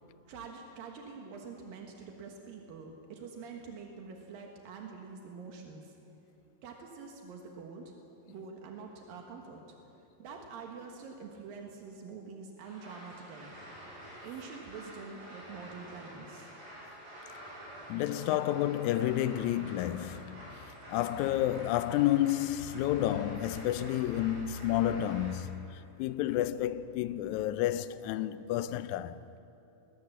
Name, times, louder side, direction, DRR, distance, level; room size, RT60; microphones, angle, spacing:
voice 1, 0.3-6.0 6.6-8.0 8.3-9.6 10.2-13.5 14.2-16.5, right 5 dB, 85° right, 3.2 m, -46 dB
sound 1, 12.6-25.3, right 1 dB, 60° right, 8.3 m, -49 dB
voice 2, 17.9-20.4 20.9-29.2, left 12 dB, 80° left, 1.7 m, -30 dB
20.0 x 19.5 x 7.2 m
omnidirectional pair, 4.0 m